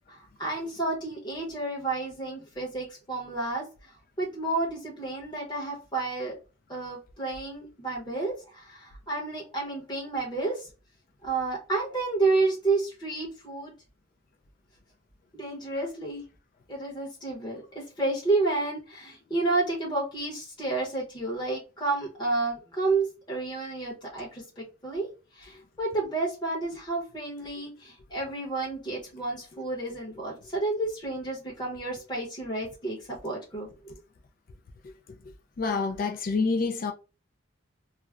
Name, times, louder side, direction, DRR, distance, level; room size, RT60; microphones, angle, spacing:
voice 1, 0.1-6.3 6.7-10.7 11.2-13.7 15.3-16.2 16.7-25.1 25.3-33.9, right 3 dB, 20° left, 0.8 m, -31 dB
voice 2, 35.6-36.9, left 4 dB, 45° left, 0.3 m, -27 dB
2.4 x 2.0 x 3.3 m
head